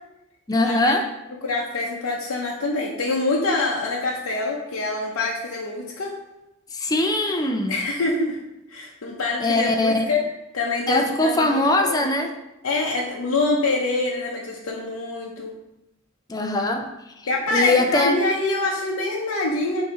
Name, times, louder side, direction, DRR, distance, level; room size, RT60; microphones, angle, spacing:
voice 1, 0.5-1.1 6.7-7.7 9.4-10.1 10.9-12.3 16.3-16.9 17.5-18.2, left 2 dB, 15° left, 4 dB, 0.5 m, -21 dB
voice 2, 1.4-6.1 7.7-8.4 8.7-10.2 10.5-12.1 12.6-15.5 17.3-19.8, left 2 dB, 80° left, -3 dB, 0.7 m, -25 dB
7.1 x 2.7 x 4.9 m, 0.94 s
head